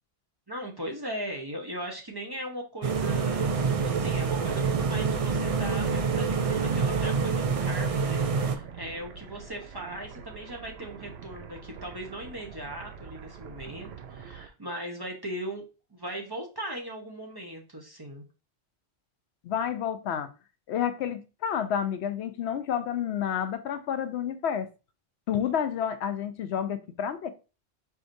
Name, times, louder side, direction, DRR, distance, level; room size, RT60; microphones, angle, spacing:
voice 1, 0.5-15.6 15.9-18.2, right 1 dB, 25° right, 0.8 m, -38 dB
sound 1, 2.8-8.5, right 5 dB, 50° right, 0.4 m, -26 dB
sound 2, 4.6-14.5, right 7 dB, 70° right, 0.9 m, -45 dB
voice 2, 19.4-20.3 20.7-24.7 25.3-27.3, left 8 dB, 80° left, 0.8 m, -30 dB
4.7 x 4.3 x 2.6 m
omnidirectional pair, 1.1 m